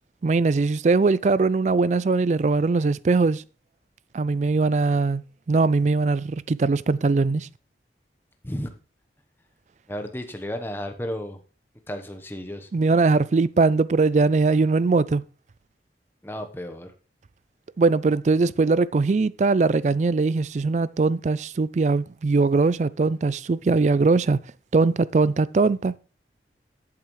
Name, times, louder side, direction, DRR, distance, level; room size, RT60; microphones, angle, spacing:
voice 1, 0.2-3.4 4.1-5.2 5.5-7.5 12.7-15.2 17.8-24.4 24.7-26.0, right 3 dB, 40° right, 0.3 m, -21 dB
voice 2, 8.4-8.7 9.9-11.4 11.9-12.7 16.2-16.9, equal, 10° left, 1.0 m, -33 dB
13.5 x 7.3 x 3.1 m
head